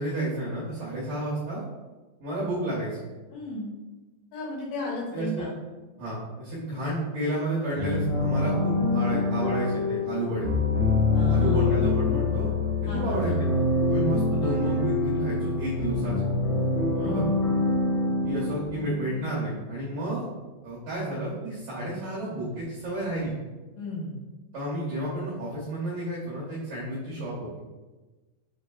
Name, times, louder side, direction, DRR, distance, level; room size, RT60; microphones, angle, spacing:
voice 1, 0.0-1.6 2.2-3.0 5.1-5.5 6.0-10.5 11.3-12.5 12.8-13.5 13.9-16.3 17.0-17.2 18.2-20.3 20.6-23.4 24.5-27.5, right 1 dB, 85° right, -7 dB, 1.9 m, -31 dB
voice 2, 3.3-3.7 4.3-5.5 11.1-11.7 12.9-13.3 16.9-17.3 23.8-24.1, left 1 dB, 85° left, -5 dB, 3.2 m, -34 dB
sound 1, 7.8-19.5, left 3 dB, 65° left, 1.7 m, -25 dB
6.3 x 2.8 x 2.3 m, 1.2 s
omnidirectional pair, 4.9 m